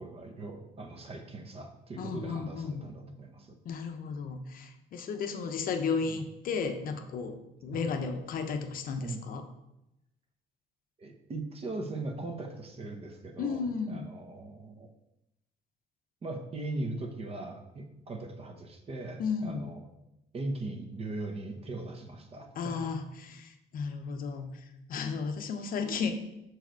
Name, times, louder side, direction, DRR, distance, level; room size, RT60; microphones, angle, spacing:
voice 1, 0.0-3.6 6.1-6.2 9.0-9.2 11.0-14.9 16.2-19.8 20.3-22.9, right 2 dB, 35° right, 5 dB, 1.0 m, -39 dB
voice 2, 2.0-2.8 3.6-7.4 7.6-9.4 13.4-14.1 19.2-19.7 22.6-26.2, left 5 dB, 55° left, 7 dB, 0.8 m, -34 dB
6.5 x 4.8 x 4.6 m, 0.89 s
cardioid pair, 110°, 17 cm